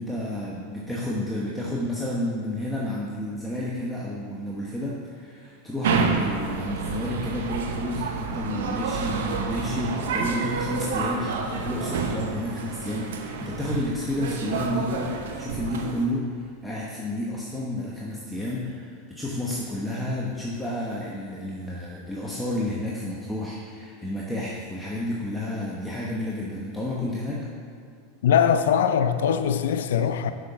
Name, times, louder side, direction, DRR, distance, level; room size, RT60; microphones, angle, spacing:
voice 1, 0.0-27.4, left 1 dB, 5° left, 1.1 m, -31 dB
sound 1, 5.8-16.0, right 5 dB, 80° right, 0.8 m, -29 dB
voice 2, 28.2-30.3, left 8 dB, 80° left, 0.4 m, -21 dB
6.3 x 5.9 x 5.8 m
hypercardioid pair, 110°, 0 cm